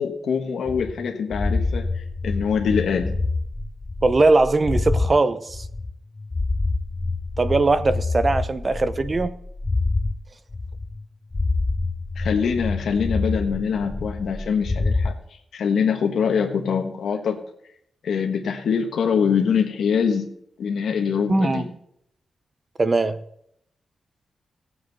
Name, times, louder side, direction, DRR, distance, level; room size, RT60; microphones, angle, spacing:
voice 1, 0.0-3.2 12.2-15.1 15.5-17.4 18.0-20.3 20.6-21.7, left 6 dB, 80° left, 3 dB, 1.3 m, -24 dB
sound 1, 0.7-5.1 5.5-10.1 10.5-11.1 11.3-15.1, left 3 dB, 25° left, 0.6 m, -26 dB
voice 2, 4.0-5.7 7.4-9.3 21.3-21.7 22.8-23.2, right 3 dB, 30° right, 13 dB, 0.7 m, -20 dB
18.0 x 7.8 x 4.1 m, 0.72 s
wide cardioid pair, 110°, 0 cm